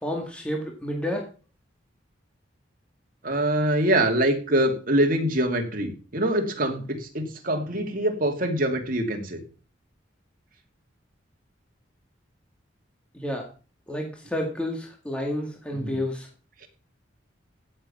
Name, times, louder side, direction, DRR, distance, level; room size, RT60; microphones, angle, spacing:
voice 1, 0.0-1.3 13.1-13.5 13.9-16.3, left 1 dB, 5° left, 1 dB, 2.1 m, -30 dB
voice 2, 3.2-9.4 15.8-16.0 16.6-16.7, right 1 dB, 50° right, 3 dB, 2.6 m, -24 dB
16.0 x 7.4 x 5.6 m, 0.37 s
head